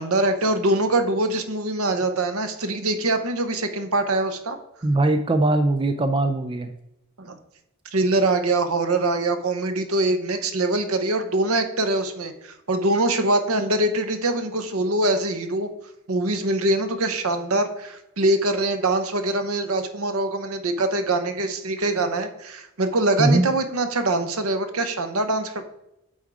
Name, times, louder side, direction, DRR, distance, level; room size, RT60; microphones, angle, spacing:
voice 1, 0.0-4.6 7.2-7.4 7.9-15.7 16.1-25.6, right 2 dB, 75° right, 8 dB, 0.9 m, -23 dB
voice 2, 4.8-6.7 23.2-23.5, right 2 dB, 20° right, 7 dB, 0.4 m, -20 dB
8.6 x 3.7 x 4.8 m, 0.87 s
head